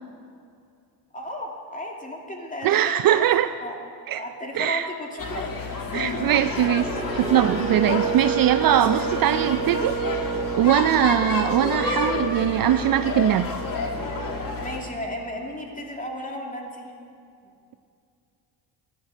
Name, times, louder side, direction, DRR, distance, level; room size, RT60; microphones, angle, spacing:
voice 1, 1.1-3.2 3.6-3.7 4.2-5.6 14.6-16.9, left 1 dB, 15° left, 0 dB, 2.7 m, -34 dB
voice 2, 2.6-3.5 4.1-4.2 4.5-4.9 5.9-10.0 10.5-13.5, right 11 dB, 50° right, 11 dB, 0.5 m, -21 dB
sound 1, 5.2-14.8, left 3 dB, 45° left, 2.0 m, -30 dB
sound 2, 6.3-14.7, right 5 dB, 15° right, 1.7 m, -31 dB
13.5 x 10.5 x 6.5 m, 2.4 s
supercardioid pair, 75°, 47 cm